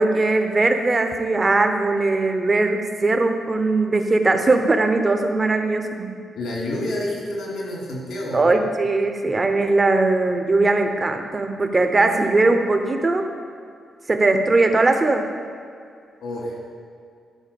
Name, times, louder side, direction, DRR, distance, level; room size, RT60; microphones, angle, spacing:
voice 1, 0.0-6.2 8.3-13.3 14.1-15.3, right 2 dB, 25° right, 6 dB, 0.8 m, -20 dB
voice 2, 6.3-8.4 16.2-16.6, left 1 dB, 85° left, -3 dB, 2.7 m, -28 dB
12.0 x 4.5 x 6.9 m, 2.3 s
cardioid pair, 130°, 0 cm